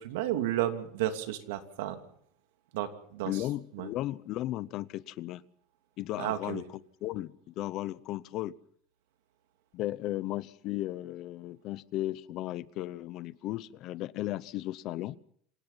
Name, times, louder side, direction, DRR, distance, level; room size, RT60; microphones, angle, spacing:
voice 1, 0.0-2.0 2.7-3.4 3.7-3.9 6.2-6.6, right 12 dB, 90° right, 2.8 m, -32 dB
voice 2, 3.2-5.4 6.0-6.6 7.0-8.6 9.7-15.2, left 15 dB, 40° left, 0.8 m, -35 dB
27.0 x 18.0 x 5.8 m
cardioid pair, 170°, 0 cm